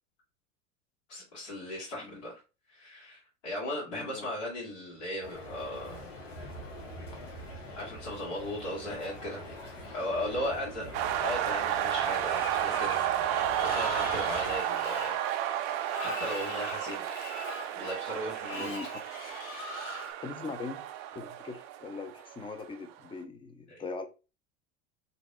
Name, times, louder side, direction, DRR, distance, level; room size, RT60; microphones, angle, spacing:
voice 1, 1.1-2.4 2.7-6.1 7.8-9.4 9.9-15.1 16.0-17.1 17.7-18.9 23.7-23.8, left 1 dB, 75° left, -5 dB, 1.5 m, -37 dB
voice 2, 3.9-4.3 18.5-18.9 20.2-20.8 21.1-24.1, left 4 dB, 15° left, 8 dB, 0.5 m, -41 dB
sound 1, 5.2-14.6, left 1 dB, 90° left, 1.0 m, -44 dB
sound 2, 10.9-22.6, right 11 dB, 50° right, 0.5 m, -32 dB
Screech, 12.2-20.1, left 3 dB, 40° left, 0.9 m, -42 dB
2.7 x 2.2 x 3.9 m, 0.31 s
hypercardioid pair, 85°, 36 cm